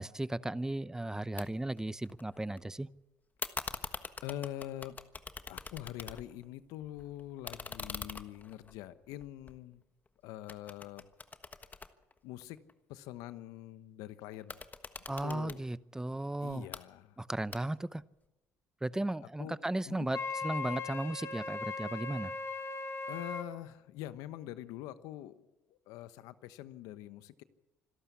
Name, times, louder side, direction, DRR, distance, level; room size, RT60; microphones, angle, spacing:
voice 1, 0.0-2.9 15.1-16.7 17.2-18.0 18.8-22.3, right 1 dB, 10° right, 17 dB, 0.7 m, -35 dB
sound 1, 1.4-1.5 1.8-2.6 3.4-6.5 6.8-10.1 10.5-12.7 14.3-15.6 16.5-16.8 17.5-18.0, left 4 dB, 30° left, 1.4 m, -44 dB
voice 2, 3.7-5.0 5.5-9.8 10.2-11.0 12.2-12.6 12.9-14.5 15.2-15.6 16.4-17.2 19.2-19.6 19.9-20.1 23.1-25.5 25.9-27.4, left 13 dB, 80° left, 13 dB, 1.0 m, -44 dB
Wind instrument woodwind instrument, 20.1-23.5, left 4 dB, 45° left, 2.0 m, -38 dB
26.0 x 12.5 x 8.4 m, 1.0 s
supercardioid pair, 70°, 6 cm